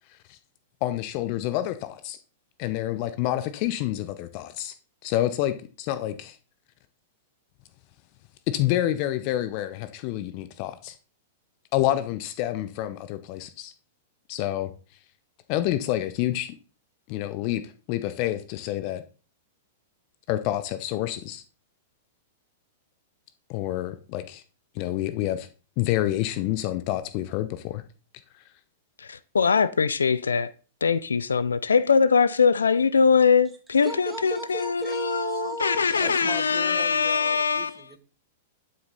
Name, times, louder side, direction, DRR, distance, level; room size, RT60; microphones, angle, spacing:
voice 1, 0.8-2.2 2.6-4.7 5.0-6.3 8.5-10.9 11.7-13.7 14.3-14.7 15.5-16.6 17.1-17.6 17.9-19.0 20.3-21.4 23.5-24.4 24.7-25.5 25.8-27.8, left 14 dB, 45° left, 0.9 m, -28 dB
voice 2, 29.0-30.5 30.8-37.8, left 5 dB, 85° left, 0.4 m, -22 dB
voice 3, 33.8-38.0, right 2 dB, 10° right, 2.6 m, -36 dB
11.5 x 6.5 x 4.1 m
hypercardioid pair, 105°, 0 cm